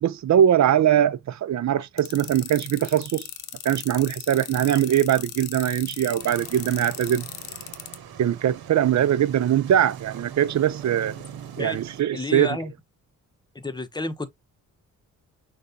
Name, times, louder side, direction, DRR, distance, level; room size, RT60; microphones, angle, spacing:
voice 1, 0.0-3.3 3.6-7.3 8.2-11.2 11.6-12.6, right 10 dB, 50° right, 0.5 m, -21 dB
sound 1, 2.0-8.0, left 12 dB, 90° left, 0.9 m, -37 dB
sound 2, 6.2-12.0, right 8 dB, 80° right, 1.1 m, -41 dB
voice 2, 12.1-12.7 13.5-14.3, left 2 dB, 10° left, 0.9 m, -30 dB
6.4 x 2.4 x 2.8 m
cardioid pair, 70°, 36 cm